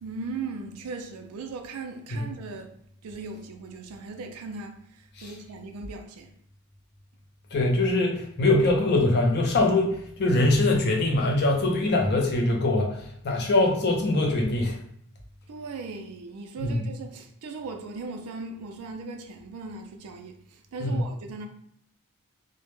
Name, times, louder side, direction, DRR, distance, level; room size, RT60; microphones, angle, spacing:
voice 1, 0.0-2.7 3.0-6.3 15.5-21.5, right 4 dB, 90° right, 0.4 m, -38 dB
voice 2, 7.5-14.8 16.6-16.9 20.8-21.0, left 2 dB, 50° left, 0.5 m, -23 dB
2.1 x 2.0 x 3.0 m
head